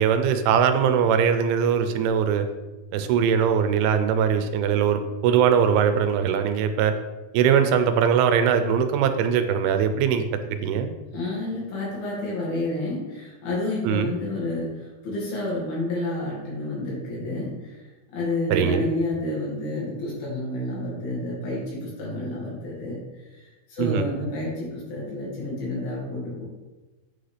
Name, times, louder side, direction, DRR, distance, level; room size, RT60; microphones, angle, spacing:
voice 1, 0.0-2.5 2.9-6.9 7.3-10.9 13.8-14.1 18.5-18.8 23.8-24.0, right 7 dB, 90° right, 8 dB, 2.5 m, -21 dB
voice 2, 11.1-23.0 23.2-26.4, left 2 dB, 70° left, -6 dB, 3.8 m, -30 dB
8.7 x 3.9 x 3.3 m, 1.1 s
omnidirectional pair, 4.5 m